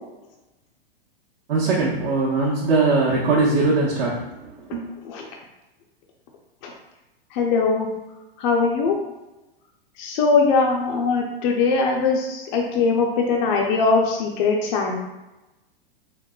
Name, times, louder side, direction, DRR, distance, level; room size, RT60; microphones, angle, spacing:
voice 1, 1.5-4.9, right 3 dB, 70° right, -7 dB, 0.8 m, -21 dB
voice 2, 7.3-7.9 8.4-8.9 10.0-15.0, left 4 dB, 50° left, 0 dB, 0.4 m, -21 dB
3.8 x 2.0 x 2.2 m, 1.0 s
hypercardioid pair, 120°, 30 cm